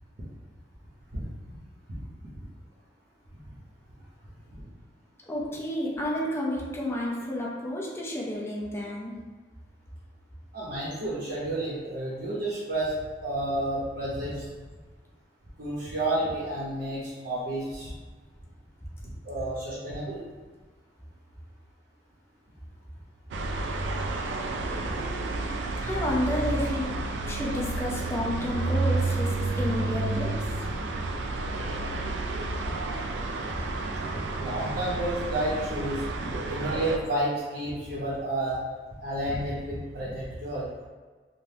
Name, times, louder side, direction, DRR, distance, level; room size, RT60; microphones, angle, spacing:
voice 1, 5.3-9.1 25.8-27.0 27.2-30.7, left 1 dB, 15° left, -4 dB, 0.5 m, -31 dB
voice 2, 10.5-12.9 13.2-14.5 15.6-17.9 19.2-20.2 34.4-38.6 39.0-40.7, right 1 dB, 60° right, -9 dB, 0.7 m, -31 dB
sound 1, 23.3-37.0, right 2 dB, 85° right, 0.3 m, -30 dB
3.4 x 2.1 x 2.7 m, 1.4 s
head